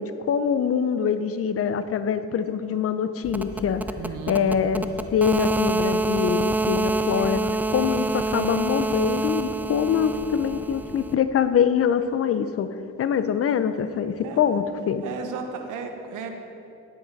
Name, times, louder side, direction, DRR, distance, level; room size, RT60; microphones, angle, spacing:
voice 1, 0.0-3.8 4.3-4.8 5.1-7.4 7.7-12.7 13.0-15.0, left 7 dB, 50° left, 11 dB, 0.6 m, -24 dB
sound 1, 3.2-11.1, right 2 dB, 5° right, 0.4 m, -27 dB
voice 2, 4.0-4.6 14.2-14.4 15.0-16.3, right 5 dB, 85° right, 5 dB, 1.1 m, -34 dB
10.5 x 9.0 x 4.1 m, 2.7 s
cardioid pair, 90°, 30 cm